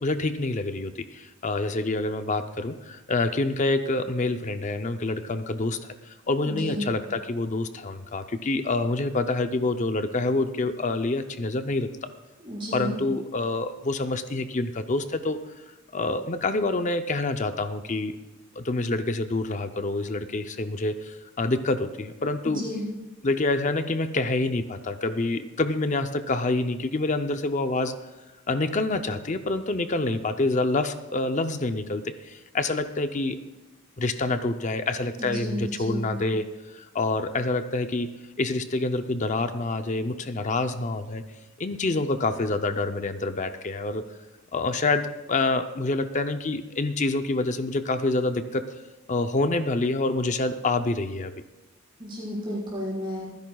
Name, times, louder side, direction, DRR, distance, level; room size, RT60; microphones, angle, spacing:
voice 1, 0.0-5.8 6.1-12.1 12.7-15.4 15.9-18.2 18.6-22.6 23.2-28.1 28.5-33.4 34.0-41.2 41.6-44.1 44.5-48.8 49.1-51.3, left 2 dB, 35° left, 8 dB, 0.6 m, -27 dB
voice 2, 6.4-7.0 12.4-13.0 22.4-22.9 35.2-36.2 52.0-53.3, equal, 25° right, -6 dB, 4.8 m, -32 dB
25.0 x 10.5 x 2.3 m, 1.1 s
head